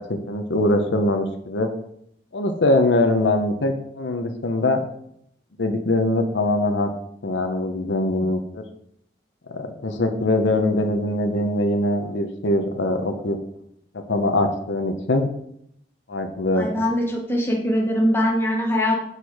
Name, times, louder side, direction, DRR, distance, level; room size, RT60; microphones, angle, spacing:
voice 1, 0.0-1.7 2.3-4.8 5.6-6.9 7.2-8.6 9.5-13.4 14.1-15.2 16.1-16.7, left 1 dB, 85° left, 6 dB, 0.8 m, -22 dB
voice 2, 16.5-19.0, equal, 10° left, -1 dB, 1.1 m, -22 dB
6.7 x 4.4 x 4.7 m, 0.71 s
head